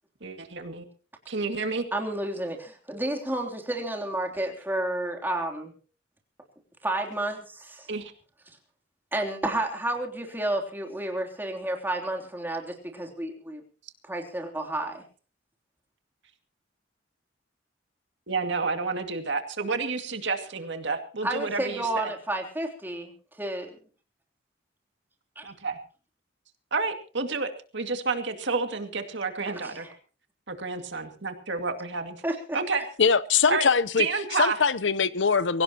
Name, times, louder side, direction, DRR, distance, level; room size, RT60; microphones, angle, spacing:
voice 1, 0.2-0.8 1.3-1.8 7.9-8.1 18.3-22.1 25.4-25.8 26.7-29.9 30.5-32.2 32.5-32.8 33.5-33.7 34.0-34.6, right 4 dB, 70° right, 2.2 m, -30 dB
voice 2, 1.9-5.7 6.8-7.9 9.1-13.6 14.1-15.0 21.2-23.1 23.4-23.8 25.3-25.5 29.5-29.9 32.2-32.6, right 1 dB, 10° right, 3.3 m, -31 dB
voice 3, 33.0-34.1 34.4-35.6, left 5 dB, 70° left, 0.8 m, -22 dB
23.0 x 17.0 x 3.0 m
head